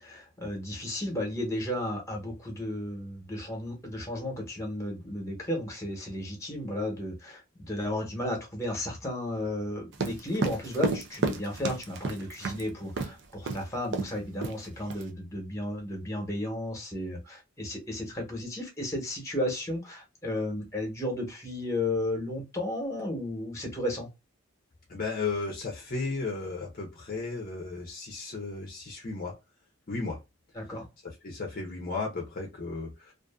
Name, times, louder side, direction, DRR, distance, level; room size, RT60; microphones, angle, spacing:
voice 1, 0.0-24.1 30.5-30.9, left 1 dB, 15° left, 1.0 m, -33 dB
sound 1, 9.9-12.6 13.0-13.1 13.5-13.6 13.9-14.2 14.4-15.0, right 4 dB, 60° right, 0.5 m, -31 dB
voice 2, 24.9-29.3 29.9-30.2 31.0-33.1, left 3 dB, 45° left, 0.6 m, -34 dB
2.5 x 2.4 x 2.3 m
head